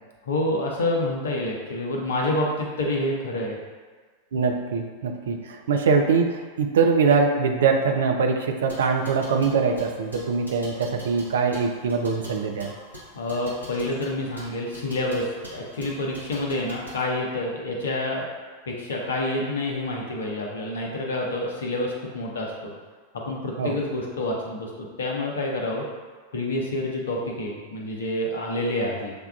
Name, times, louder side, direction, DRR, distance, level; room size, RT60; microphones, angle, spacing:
voice 1, 0.2-3.6 13.1-18.2 18.7-22.7 23.1-25.8 26.3-29.1, left 1 dB, 65° left, -1 dB, 0.7 m, -28 dB
voice 2, 4.3-12.7 23.6-23.7, right 5 dB, 60° right, 3 dB, 0.4 m, -23 dB
sound 1, 8.6-17.0, equal, 85° right, 0.9 m, -44 dB
6.4 x 2.3 x 2.3 m, 1.4 s
figure-of-eight pair, 90°, 0 cm